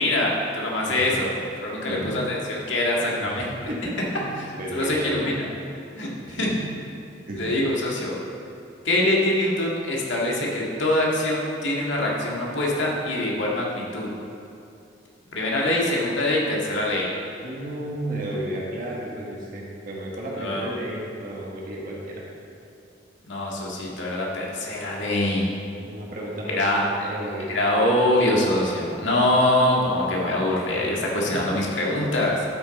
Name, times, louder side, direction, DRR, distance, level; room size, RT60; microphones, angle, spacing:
voice 1, 0.0-1.3 1.6-3.4 4.4-5.5 5.9-6.5 7.4-8.2 8.8-14.1 15.3-17.1 20.4-20.7 23.2-25.5 26.5-27.1 27.5-32.4, left 1 dB, 90° left, -3 dB, 1.8 m, -24 dB
voice 2, 0.9-1.2 1.9-2.1 3.2-4.3 4.6-5.3 6.3-6.6 7.3-7.6 17.4-22.2 25.8-27.5 30.8-30.9 31.3-31.8, right 1 dB, 50° right, -4 dB, 1.5 m, -33 dB
12.0 x 6.3 x 4.1 m, 2.7 s
head